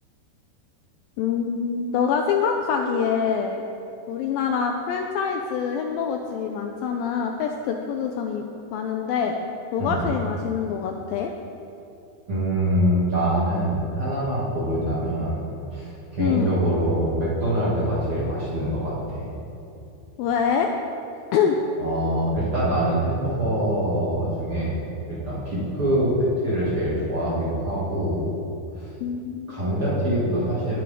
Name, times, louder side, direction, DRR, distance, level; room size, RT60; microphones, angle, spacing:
voice 1, 1.2-3.6 4.1-8.4 8.7-9.3 9.7-11.3 16.2-16.5 20.2-20.7 21.3-21.6 29.0-29.6, left 7 dB, 80° left, 3 dB, 2.2 m, -25 dB
voice 2, 12.3-15.4 15.7-19.3 21.8-26.1 26.4-28.3 28.7-28.9 29.5-30.8, right 1 dB, 40° right, -9 dB, 2.7 m, -24 dB
19.0 x 9.4 x 3.7 m, 2.7 s
omnidirectional pair, 4.6 m